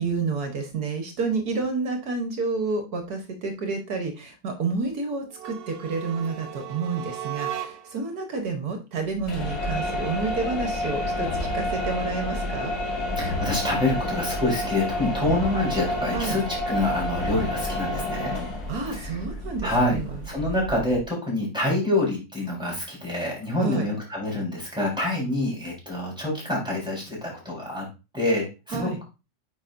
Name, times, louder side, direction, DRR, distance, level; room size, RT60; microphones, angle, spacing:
voice 1, 0.0-11.3 11.5-12.7 16.1-16.4 18.7-20.2 23.6-23.9 28.7-29.0, right 4 dB, 60° right, 5 dB, 1.5 m, -29 dB
sound 1, 5.3-8.1, right 11 dB, 85° right, 0.5 m, -36 dB
sound 2, 9.2-21.1, left 1 dB, 60° left, 2.4 m, -29 dB
voice 2, 13.2-18.3 18.9-19.2 19.6-27.8 28.1-29.0, left 1 dB, ahead, -4 dB, 3.9 m, -26 dB
8.8 x 5.6 x 2.5 m, 0.29 s
omnidirectional pair, 1.9 m